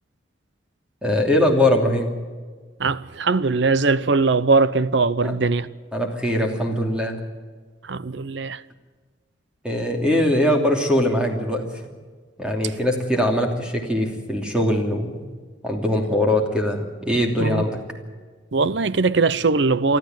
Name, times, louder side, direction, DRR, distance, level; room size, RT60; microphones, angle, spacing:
voice 1, 1.0-2.1 5.2-5.4 5.9-7.2 9.6-11.6 12.4-15.1 15.6-17.8, left 1 dB, 5° right, 2.9 m, -21 dB
voice 2, 2.8-5.7 7.8-8.6 17.4-17.6 18.5-20.0, right 4 dB, 60° right, 0.6 m, -20 dB
24.0 x 13.5 x 9.1 m
head